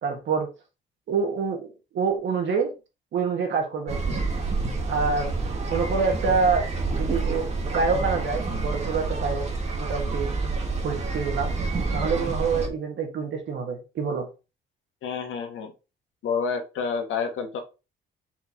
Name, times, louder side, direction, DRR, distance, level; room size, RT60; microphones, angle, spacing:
voice 1, 0.0-0.5 1.1-1.7 1.9-2.7 3.1-4.2 4.9-5.3 5.7-9.5 9.7-10.5 10.8-11.6 11.9-14.3, right 5 dB, 70° right, 3 dB, 1.5 m, -26 dB
sound 1, 3.9-12.7, right 3 dB, 35° right, 1.4 m, -28 dB
voice 2, 15.0-15.7 16.2-17.6, left 5 dB, 80° left, 5 dB, 1.2 m, -29 dB
4.5 x 3.9 x 2.9 m, 0.30 s
cardioid pair, 90°, 20 cm